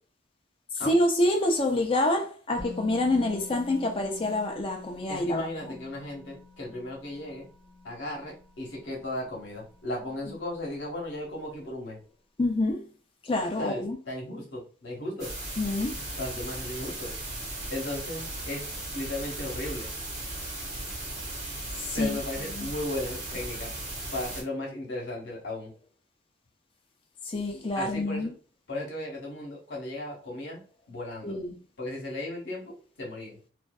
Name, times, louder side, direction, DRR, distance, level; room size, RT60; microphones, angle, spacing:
voice 1, 0.7-5.8 10.3-10.4 12.4-12.9 13.2-14.0 15.6-16.0 21.8-22.2 22.5-22.7 27.3-28.3 31.2-31.6, left 1 dB, 30° left, 0.5 m, -27 dB
Musical instrument, 2.6-10.5 10.7-10.9, left 3 dB, 5° right, 1.0 m, -47 dB
voice 2, 5.1-7.5 7.8-12.0 13.6-15.3 16.2-17.1 17.7-18.7 18.9-19.9 21.9-23.7 24.1-25.7 27.8-28.3 28.7-30.6 30.9-31.4 31.8-33.4, left 1 dB, 80° left, 0.9 m, -36 dB
sound 1, 15.2-24.4, right 2 dB, 40° right, 1.0 m, -37 dB
2.5 x 2.3 x 2.2 m
head